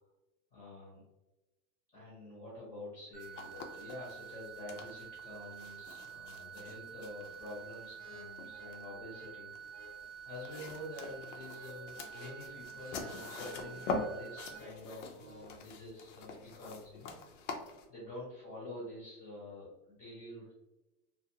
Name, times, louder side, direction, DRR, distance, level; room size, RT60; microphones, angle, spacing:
voice 1, 0.5-1.1 1.9-9.8 10.2-17.1 17.9-20.5, left 1 dB, 20° left, -7 dB, 0.8 m, -48 dB
sound 1, 3.1-14.6, right 8 dB, 5° right, 0.3 m, -49 dB
sound 2, 3.2-17.8, left 3 dB, 50° left, 0.5 m, -45 dB
sound 3, 8.0-15.6, left 1 dB, 40° right, 0.7 m, -56 dB
2.5 x 2.4 x 2.7 m, 1.0 s
supercardioid pair, 145°, 47 cm